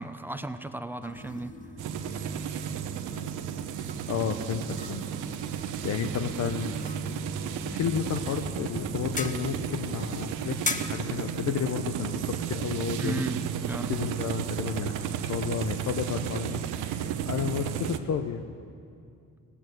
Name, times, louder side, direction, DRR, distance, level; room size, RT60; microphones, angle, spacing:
voice 1, 0.0-1.5 13.0-13.9, right 2 dB, 5° right, 9 dB, 0.7 m, -35 dB
sound 1, 1.0-9.0, left 1 dB, 90° left, 4.2 m, -46 dB
sound 2, 1.0-14.1, left 3 dB, 25° left, 1.0 m, -42 dB
sound 3, 1.8-18.0, right 8 dB, 90° right, 0.9 m, -33 dB
voice 2, 3.8-5.0 5.8-6.7 7.6-10.6 10.8-13.2 13.9-18.5, left 7 dB, 60° left, 7 dB, 0.8 m, -32 dB
17.5 x 8.5 x 9.3 m, 2.4 s
cardioid pair, 90°, 30 cm